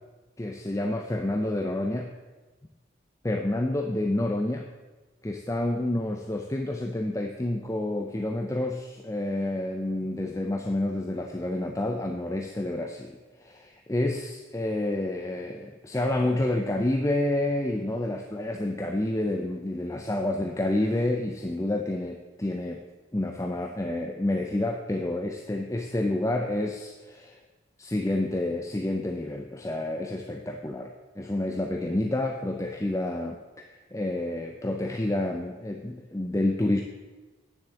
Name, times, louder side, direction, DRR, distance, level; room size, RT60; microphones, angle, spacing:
voice 1, 0.4-2.1 3.2-4.7 5.2-22.8 23.1-27.4 27.8-36.8, left 1 dB, 15° left, 3 dB, 0.5 m, -29 dB
9.5 x 7.2 x 7.6 m, 1.2 s
head